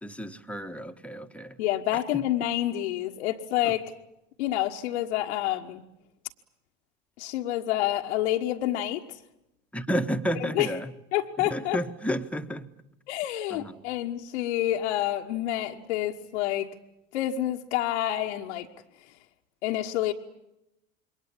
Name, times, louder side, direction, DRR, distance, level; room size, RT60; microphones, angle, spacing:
voice 1, 0.0-1.6 2.1-2.2 3.6-3.7 9.7-10.9 11.4-12.7 13.5-13.8, equal, 5° left, 8 dB, 1.7 m, -31 dB
voice 2, 1.6-3.9 4.4-5.8 7.2-9.0 10.3-10.7 11.1-11.8 13.1-16.7 17.1-18.7 19.6-20.1, left 13 dB, 65° left, 1 dB, 1.5 m, -28 dB
27.5 x 23.0 x 8.8 m, 0.89 s
figure-of-eight pair, 75°, 38 cm